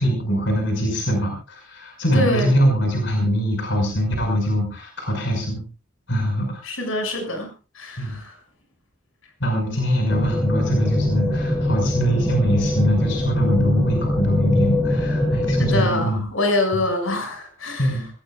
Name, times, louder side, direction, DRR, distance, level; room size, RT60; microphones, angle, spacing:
voice 1, 0.0-5.6 6.1-6.7 8.0-8.2 9.4-16.2 17.8-18.0, equal, 60° left, 2 dB, 5.6 m, -22 dB
voice 2, 2.1-2.6 6.6-7.5 7.7-8.4 15.6-18.0, left 2 dB, 80° left, 4 dB, 6.6 m, -25 dB
sound 1, 10.1-15.8, left 1 dB, 15° left, 2.0 m, -22 dB
25.5 x 17.0 x 2.5 m, 0.33 s
head